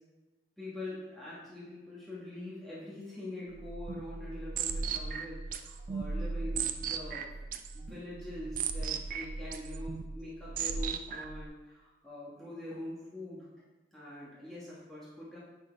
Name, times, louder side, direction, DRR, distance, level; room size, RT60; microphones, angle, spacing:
voice 1, 0.6-13.5 13.9-15.4, left 1 dB, ahead, -9 dB, 1.3 m, -44 dB
sound 1, 3.5-11.5, right 5 dB, 50° right, 0.4 m, -37 dB
9.5 x 4.1 x 3.4 m, 1.1 s
head